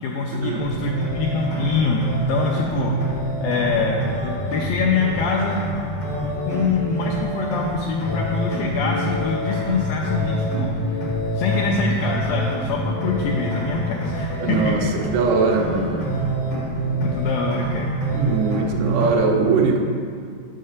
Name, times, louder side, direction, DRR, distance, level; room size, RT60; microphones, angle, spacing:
voice 1, 0.0-3.0 3.4-11.0 11.4-14.7 16.9-18.0, left 4 dB, 85° left, -2 dB, 2.0 m, -25 dB
sound 1, 0.5-19.1, right 1 dB, 60° left, 0.9 m, -26 dB
voice 2, 14.4-16.1 18.1-19.8, right 4 dB, 85° right, 2 dB, 2.9 m, -21 dB
6.5 x 5.5 x 6.4 m, 2.2 s
omnidirectional pair, 4.6 m